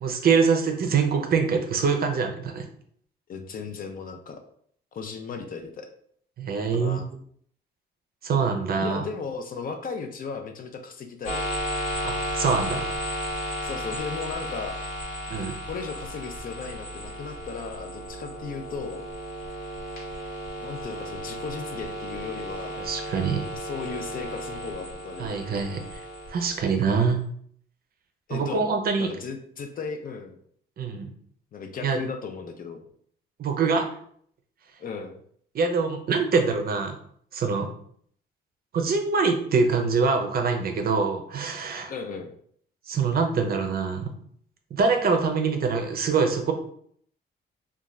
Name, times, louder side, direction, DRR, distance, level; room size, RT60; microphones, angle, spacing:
voice 1, 0.0-2.7 6.4-7.0 8.2-9.0 12.0-12.9 15.3-15.6 22.8-23.4 25.2-25.8 26.3-27.3 28.3-29.1 30.8-31.1 31.8-32.0 33.4-33.9 35.5-36.9 37.3-37.7 38.7-41.9 42.9-44.1 44.7-46.5, right 5 dB, 50° right, 5 dB, 0.5 m, -24 dB
voice 2, 3.3-4.4 4.9-5.9 6.7-7.1 8.8-11.5 13.6-14.8 15.7-19.0 20.6-22.8 23.5-25.4 28.3-30.4 31.5-32.8 34.8-35.2 41.9-42.3, left 5 dB, 45° left, 6 dB, 0.4 m, -36 dB
sound 1, 11.2-27.0, equal, 80° left, 1.1 m, -34 dB
2.4 x 2.3 x 3.0 m, 0.63 s
cardioid pair, 90°, 20 cm